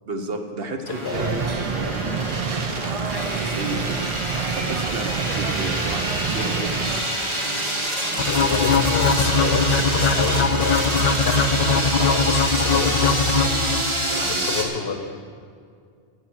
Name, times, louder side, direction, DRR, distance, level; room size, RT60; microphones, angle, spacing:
voice 1, 0.1-4.0 4.5-6.1 6.3-6.8 14.1-14.6, right 2 dB, 70° right, 4 dB, 1.2 m, -32 dB
sound 1, 0.8-14.6, right 1 dB, 30° right, 1.5 m, -27 dB
voice 2, 0.9-1.5 8.3-13.2 14.3-15.1, left 5 dB, 75° left, 7 dB, 1.2 m, -28 dB
sound 2, 1.1-7.0, right 6 dB, 45° right, 0.5 m, -28 dB
sound 3, 8.2-14.1, left 4 dB, 45° left, 0.7 m, -21 dB
15.5 x 7.4 x 6.2 m, 2.3 s
omnidirectional pair, 1.1 m